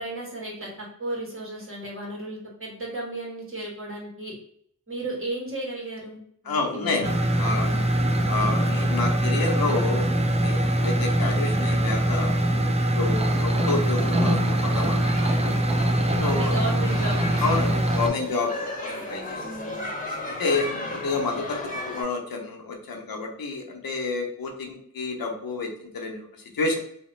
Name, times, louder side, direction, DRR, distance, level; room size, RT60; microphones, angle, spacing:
voice 1, 0.0-4.3 4.9-7.1 7.4-7.9 13.2-13.4 16.2-18.2 19.4-19.9 20.5-20.9, right 1 dB, 40° right, -3 dB, 1.5 m, -35 dB
voice 2, 6.5-7.1 7.4-7.7 8.3-10.1 10.4-12.3 13.0-15.5 16.2-16.5 17.4-19.4 20.4-21.6 21.9-26.3 26.5-26.8, left 3 dB, 90° left, 1 dB, 0.7 m, -29 dB
sound 1, 7.0-18.1, right 1 dB, 20° right, 0.4 m, -23 dB
sound 2, 13.2-22.0, left 2 dB, 25° left, 0.8 m, -35 dB
2.8 x 2.0 x 3.1 m, 0.64 s
cardioid pair, 45°, 34 cm